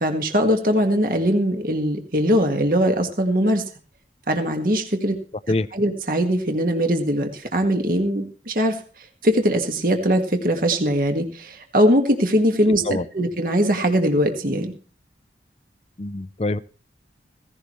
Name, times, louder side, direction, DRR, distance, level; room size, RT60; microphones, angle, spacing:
voice 1, 0.0-3.6 4.3-5.2 5.7-8.8 9.2-14.7, equal, 50° right, 1.9 m, -21 dB
voice 2, 16.0-16.6, left 2 dB, 35° left, 0.6 m, -24 dB
16.5 x 15.5 x 3.2 m
head